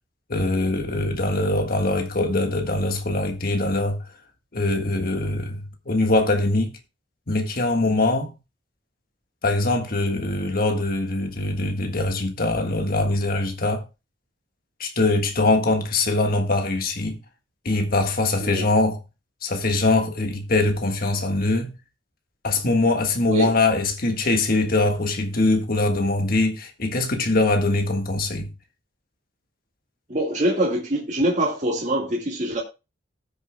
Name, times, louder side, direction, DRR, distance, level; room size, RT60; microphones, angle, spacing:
voice 1, 0.3-4.0 4.5-6.7 7.3-8.3 9.4-13.8 14.8-17.2 17.6-19.0 19.4-21.7 22.4-28.5, left 2 dB, 50° left, 1.5 m, -22 dB
voice 2, 30.1-32.6, right 1 dB, 40° right, 1.9 m, -24 dB
19.0 x 6.8 x 2.2 m
head